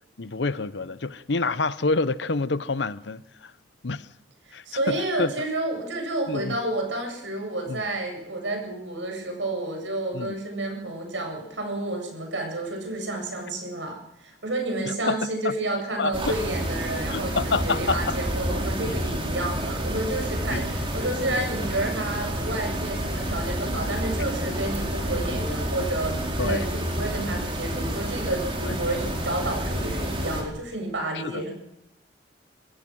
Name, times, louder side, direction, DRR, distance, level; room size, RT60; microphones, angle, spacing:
voice 1, 0.2-3.5 3.8-4.1 4.5-5.3 6.3-6.6 7.7-7.8 10.1-10.4 14.8-15.2 15.4-15.5 16.0-16.3 17.1-18.2 18.8-19.1 20.5-20.7 25.8-25.9 26.4-26.7 28.7-28.8 31.2-31.4, left 3 dB, 70° left, 0.8 m, -28 dB
voice 2, 4.5-31.5, right 2 dB, 85° right, 8.0 m, -30 dB
sound 1, 16.1-30.4, right 1 dB, 30° right, 4.9 m, -29 dB
26.0 x 16.5 x 6.3 m
head